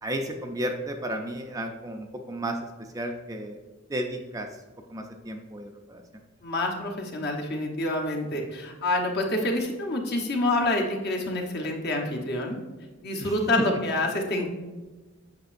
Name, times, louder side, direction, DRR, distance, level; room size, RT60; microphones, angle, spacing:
voice 1, 0.0-2.6 2.9-3.6 3.9-4.5 4.9-6.0 13.2-13.6, right 1 dB, 15° right, 4 dB, 0.4 m, -33 dB
voice 2, 6.4-12.6 13.0-14.5, left 1 dB, 50° left, 0 dB, 1.1 m, -27 dB
7.8 x 6.0 x 2.6 m, 1.3 s
head